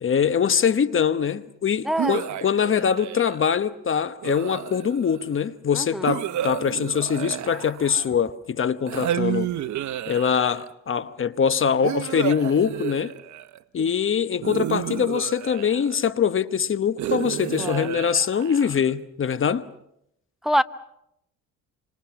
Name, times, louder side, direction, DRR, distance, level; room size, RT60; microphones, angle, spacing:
voice 1, 0.0-9.5 10.1-13.1 13.7-19.7, left 7 dB, 45° left, 1.0 m, -23 dB
voice 2, 1.8-2.2 5.7-6.2 17.6-17.9 20.4-20.6, equal, ahead, 0.9 m, -25 dB
sound 1, 2.0-3.5 4.2-5.2 6.1-8.3 8.9-10.7 11.8-13.6 14.4-16.1 17.0-18.9, right 12 dB, 70° right, 0.9 m, -31 dB
27.0 x 25.5 x 5.9 m
cardioid pair, 90°, 30 cm